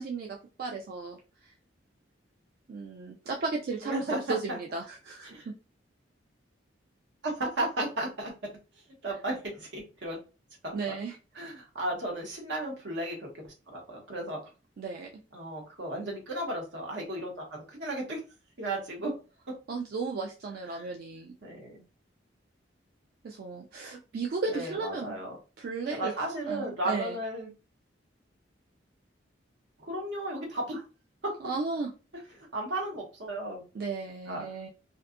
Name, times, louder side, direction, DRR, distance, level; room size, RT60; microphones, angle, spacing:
voice 1, 0.0-1.5 2.7-5.5 10.7-11.2 14.8-15.1 19.7-21.3 23.2-25.2 25.6-27.2 31.4-31.9 33.7-34.7, right 4 dB, 55° right, 1 dB, 0.3 m, -35 dB
voice 2, 3.8-4.6 5.2-5.5 7.2-8.3 9.0-10.2 10.6-10.7 11.3-14.4 15.3-18.2 18.6-19.1 20.7-20.9 21.4-21.8 24.5-25.3 25.9-27.5 29.8-30.8 31.2-31.3 32.4-33.6 34.3-34.5, right 1 dB, 75° right, 0 dB, 1.0 m, -34 dB
2.6 x 2.3 x 2.4 m, 0.32 s
head